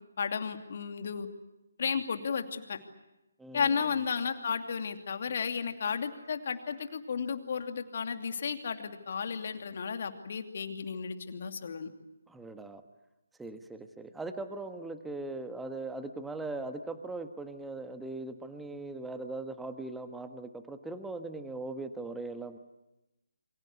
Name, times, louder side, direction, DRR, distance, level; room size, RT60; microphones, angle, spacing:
voice 1, 0.2-1.3 1.8-2.8 3.5-11.9, left 6 dB, 45° left, 7 dB, 2.7 m, -33 dB
voice 2, 3.4-3.8 12.3-12.8 13.4-22.6, right 2 dB, 5° right, 8 dB, 1.3 m, -40 dB
28.5 x 24.5 x 8.2 m, 0.95 s
figure-of-eight pair, 145°, 0 cm